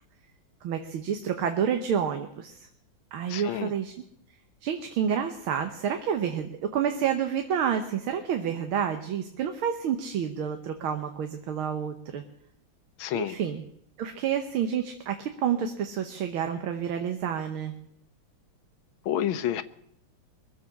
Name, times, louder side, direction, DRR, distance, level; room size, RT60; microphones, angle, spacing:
voice 1, 0.6-2.7 3.1-4.0 4.6-12.2 13.1-13.6 14.0-17.7, right 8 dB, 80° right, 6 dB, 1.9 m, -29 dB
voice 2, 3.3-3.7 13.0-13.4 19.0-19.6, left 10 dB, 75° left, 12 dB, 1.6 m, -29 dB
23.0 x 7.7 x 7.0 m, 0.73 s
omnidirectional pair, 2.3 m